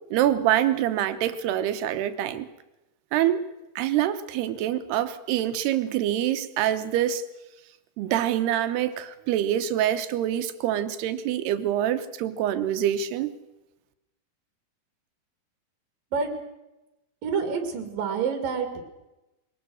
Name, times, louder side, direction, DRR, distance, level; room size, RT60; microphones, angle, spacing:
voice 1, 0.1-2.5 3.1-3.4 3.8-7.2 8.0-13.3, right 11 dB, 85° right, 11 dB, 3.1 m, -25 dB
voice 2, 17.2-18.9, right 6 dB, 60° right, 6 dB, 4.0 m, -28 dB
22.5 x 19.0 x 6.4 m, 0.99 s
omnidirectional pair, 4.5 m